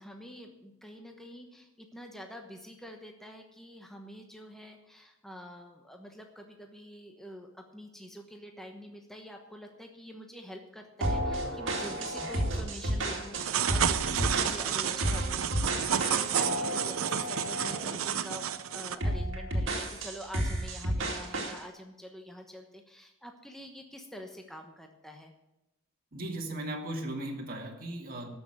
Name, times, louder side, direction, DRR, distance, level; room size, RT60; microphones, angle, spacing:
voice 1, 0.0-25.3, equal, ahead, 3 dB, 1.1 m, -46 dB
sound 1, 11.0-18.0 18.3-18.6 19.0-21.6, right 1 dB, 60° right, 2.2 m, -32 dB
sound 2, 13.3-19.0, right 9 dB, 80° right, 0.7 m, -31 dB
voice 2, 14.0-14.3 26.1-28.3, right 1 dB, 45° right, 0 dB, 2.1 m, -37 dB
13.5 x 6.3 x 8.8 m, 0.91 s
head